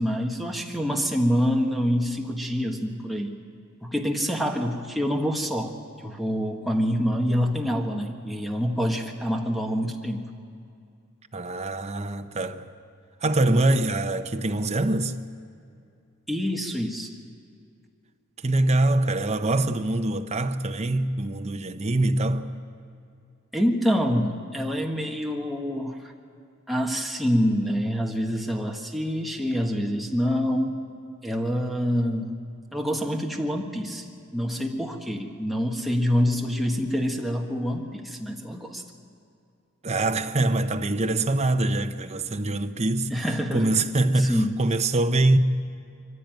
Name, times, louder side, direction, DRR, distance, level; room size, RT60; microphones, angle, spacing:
voice 1, 0.0-3.4 3.8-5.7 6.0-10.3 16.3-17.1 23.5-26.1 26.7-30.8 31.2-32.3 32.7-34.0 34.3-38.8 43.1-43.8 44.2-44.6, equal, ahead, 1.6 m, -26 dB
voice 2, 11.3-12.7 13.2-15.1 18.4-22.5 39.8-43.1 43.5-45.4, right 2 dB, 30° right, 0.8 m, -24 dB
23.0 x 15.5 x 9.1 m
head